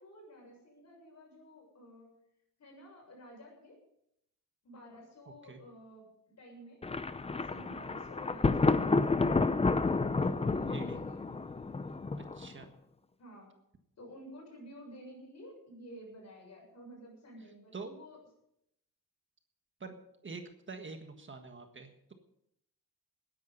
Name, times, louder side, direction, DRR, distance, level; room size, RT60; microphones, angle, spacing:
voice 1, 0.0-2.1 2.6-3.8 4.6-6.8 7.4-9.5 9.8-11.4 13.2-13.5 14.0-18.2, equal, 50° left, 0 dB, 7.1 m, -52 dB
Thunder, 6.8-12.6, left 3 dB, 20° left, 0.6 m, -30 dB
voice 2, 10.4-11.0 12.2-12.8 17.4-18.0 19.8-20.0 20.2-22.1, right 4 dB, 35° right, 5 dB, 1.6 m, -46 dB
19.5 x 10.5 x 5.5 m, 0.78 s
wide cardioid pair, 140°, 33 cm